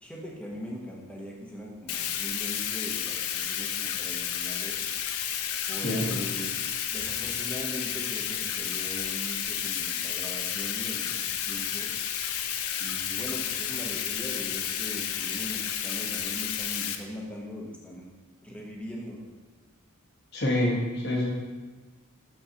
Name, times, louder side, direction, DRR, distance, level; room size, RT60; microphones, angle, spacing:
voice 1, 0.0-4.8 5.7-6.6 6.9-11.9 12.8-18.1 18.4-19.2, equal, 5° left, -3 dB, 0.8 m, -40 dB
Bathtub (filling or washing), 1.9-17.0, left 9 dB, 85° left, 0.5 m, -31 dB
voice 2, 5.8-6.2 20.3-21.3, left 1 dB, 50° left, -2 dB, 1.1 m, -27 dB
6.3 x 5.7 x 2.8 m, 1.3 s
head